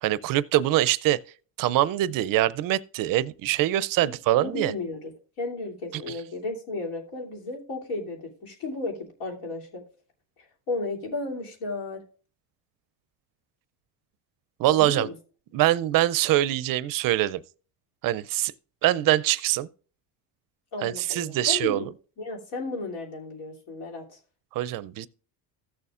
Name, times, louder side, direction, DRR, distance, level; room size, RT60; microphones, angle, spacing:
voice 1, 0.0-1.2 1.6-4.7 5.9-6.0 14.6-15.1 15.5-17.4 18.0-18.5 18.8-19.7 20.8-21.9 24.6-25.1, right 14 dB, 50° right, 0.5 m, -23 dB
voice 2, 4.0-5.1 5.4-9.8 10.7-12.0 14.7-15.1 20.7-21.9 22.2-24.2, left 3 dB, 80° left, 3.0 m, -34 dB
15.5 x 6.9 x 2.4 m
cardioid pair, 120°, 46 cm